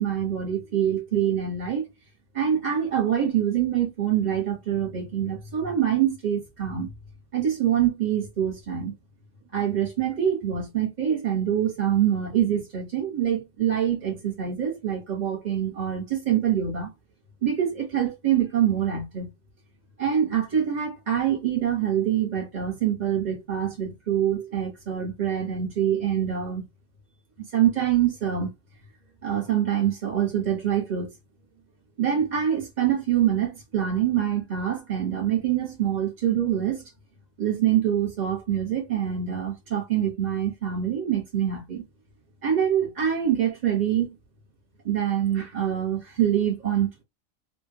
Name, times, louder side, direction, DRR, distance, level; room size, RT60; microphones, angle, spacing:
voice 1, 0.0-1.9 2.3-6.9 7.3-8.9 9.5-16.9 17.4-19.3 20.0-26.6 27.5-28.5 29.2-31.1 32.0-36.8 37.4-41.8 42.4-44.1 44.8-47.0, right 10 dB, 35° right, 1.0 m, -25 dB
3.2 x 2.2 x 2.7 m
omnidirectional pair, 1.4 m